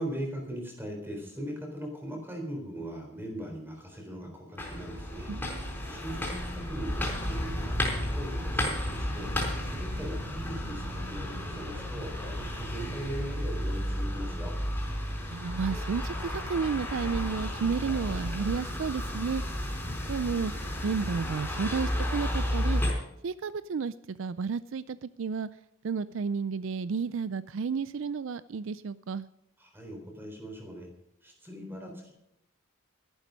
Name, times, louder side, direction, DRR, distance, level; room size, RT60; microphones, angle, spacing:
voice 1, 0.0-5.3 5.9-14.5 29.6-30.9 31.2-32.1, equal, 10° right, 2 dB, 4.0 m, -40 dB
sound 1, 4.6-22.9, equal, 10° left, 4.3 m, -32 dB
voice 2, 5.3-5.8 15.3-19.4 20.1-20.5 20.8-22.8 23.2-25.5 25.8-29.2, right 5 dB, 60° right, 16 dB, 0.4 m, -32 dB
13.5 x 12.0 x 5.3 m, 0.82 s
head